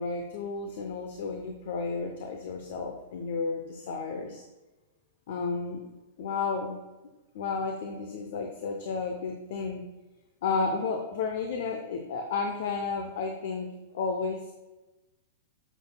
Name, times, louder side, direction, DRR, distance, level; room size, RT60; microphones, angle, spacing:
voice 1, 0.0-4.4 5.3-5.8 6.2-6.8 7.3-9.8 10.4-13.7 13.9-14.5, left 4 dB, 65° left, 4 dB, 0.8 m, -32 dB
9.1 x 6.1 x 2.3 m, 1.1 s
hypercardioid pair, 115°, 0 cm